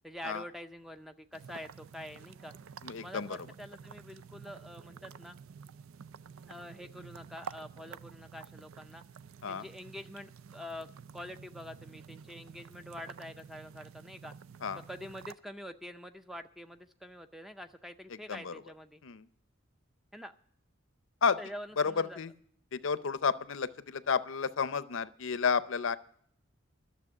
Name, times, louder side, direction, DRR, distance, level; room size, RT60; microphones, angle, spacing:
voice 1, 0.0-2.5 3.0-5.4 6.5-9.0 9.5-10.9 11.1-14.3 14.9-19.0 20.1-20.3 21.4-22.2, left 1 dB, ahead, 8 dB, 0.5 m, -46 dB
sound 1, 1.3-15.3, right 7 dB, 80° right, 0.4 m, -50 dB
voice 2, 2.8-3.4 9.4-9.6 14.6-14.8 18.3-18.5 19.0-19.3 21.2-21.4 21.8-22.3 22.7-26.0, left 5 dB, 70° left, 15 dB, 0.6 m, -31 dB
12.0 x 7.0 x 9.8 m, 0.63 s
head